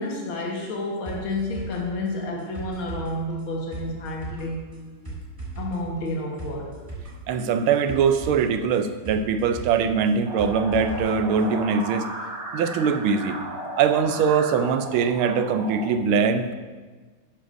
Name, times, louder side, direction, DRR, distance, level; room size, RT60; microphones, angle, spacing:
voice 1, 0.0-4.6 5.6-6.8, left 1 dB, 70° left, -2 dB, 2.2 m, -30 dB
sound 1, 1.1-11.1 11.4-11.5, right 3 dB, 10° right, 3.0 m, -38 dB
voice 2, 7.3-12.1 12.5-13.4 13.8-16.5, right 6 dB, 80° right, 9 dB, 1.5 m, -22 dB
sound 2, 10.3-15.8, right 1 dB, 45° right, 1.6 m, -35 dB
12.5 x 10.0 x 2.6 m, 1.4 s
omnidirectional pair, 2.4 m